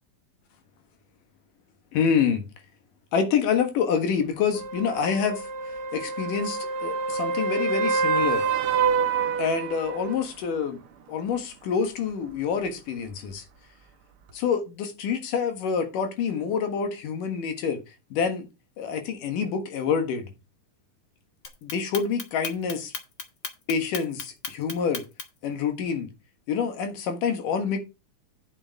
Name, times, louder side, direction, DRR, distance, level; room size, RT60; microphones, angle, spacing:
voice 1, 1.9-2.4 3.1-5.4 5.9-8.4 9.4-10.8 11.1-13.4 14.3-17.8 18.1-18.5 18.8-20.2 21.6-22.9 23.7-25.0 25.4-26.1 26.5-27.8, left 6 dB, 75° left, 3.1 m, -27 dB
sound 1, 4.5-10.2 14.3-14.4, right 5 dB, 60° right, 1.4 m, -27 dB
Clock, 21.4-25.5, left 5 dB, 50° left, 1.5 m, -35 dB
9.2 x 7.1 x 4.6 m
omnidirectional pair, 3.8 m